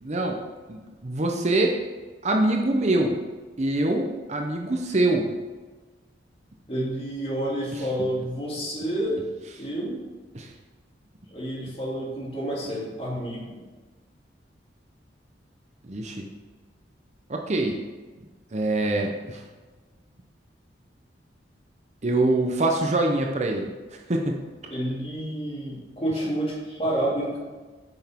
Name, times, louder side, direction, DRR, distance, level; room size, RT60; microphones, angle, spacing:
voice 1, 0.0-0.4 0.7-1.8 2.2-3.2 3.6-5.3 10.3-10.5 15.9-16.2 17.3-17.8 18.5-19.4 22.0-23.7 24.1-24.4, right 2 dB, 40° right, 2 dB, 0.7 m, -24 dB
voice 2, 6.7-9.2 9.6-10.0 11.3-13.6 24.7-27.4, right 1 dB, 30° left, -4 dB, 2.1 m, -29 dB
8.9 x 5.9 x 3.6 m, 1.3 s
head